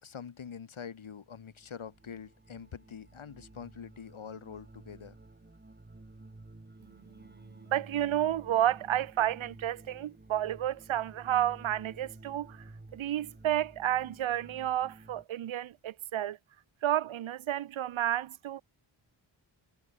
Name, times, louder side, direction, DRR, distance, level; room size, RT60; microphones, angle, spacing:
voice 1, 0.0-5.2, left 7 dB, 80° left, 2.0 m, -45 dB
sound 1, 1.2-15.2, right 2 dB, 20° right, 2.3 m, -53 dB
voice 2, 6.8-12.6 12.9-16.4 16.8-18.6, right 12 dB, 75° right, 0.6 m, -31 dB
wide cardioid pair, 70°, 48 cm